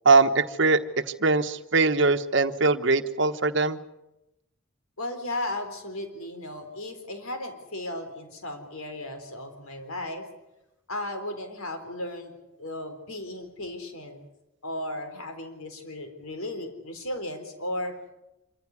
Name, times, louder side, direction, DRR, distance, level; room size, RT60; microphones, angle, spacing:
voice 1, 0.0-0.8 1.2-3.8, right 3 dB, 60° right, 8 dB, 1.1 m, -21 dB
voice 2, 5.0-10.3 10.9-14.3 14.6-18.0, left 1 dB, 90° left, 6 dB, 4.0 m, -35 dB
26.0 x 14.5 x 9.7 m, 0.94 s
head